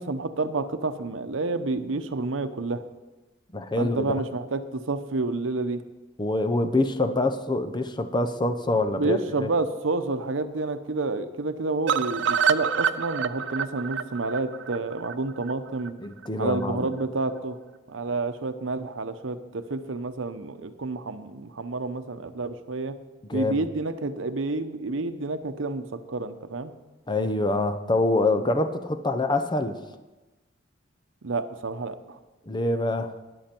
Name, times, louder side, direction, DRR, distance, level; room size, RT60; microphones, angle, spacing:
voice 1, 0.0-2.8 3.8-5.8 8.9-15.9 16.4-17.6 17.9-23.0 23.3-26.7 31.2-32.2, right 3 dB, 85° right, 10 dB, 0.8 m, -29 dB
voice 2, 3.5-4.1 6.2-9.5 16.0-16.9 23.3-23.6 27.1-29.7 32.5-33.2, left 2 dB, 25° left, 9 dB, 0.7 m, -25 dB
sound 1, 11.9-15.9 16.2-16.3 16.6-16.7 17.0-17.1, right 7 dB, 65° right, 0.5 m, -27 dB
13.0 x 10.0 x 4.4 m, 1.1 s
head